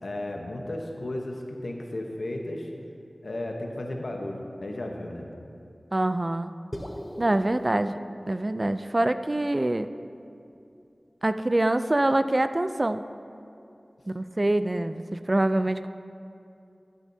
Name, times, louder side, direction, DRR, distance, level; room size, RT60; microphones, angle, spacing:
voice 1, 0.0-2.7 3.2-5.3, left 1 dB, 85° left, 1 dB, 1.0 m, -34 dB
voice 2, 5.9-6.5 7.2-8.0 8.2-9.9 11.2-13.0 14.1-15.9, right 1 dB, 40° right, 11 dB, 0.3 m, -25 dB
sound 1, 6.7-11.1, equal, 15° left, 0.7 m, -43 dB
13.5 x 9.6 x 2.7 m, 2.6 s
wide cardioid pair, 45°, 0 cm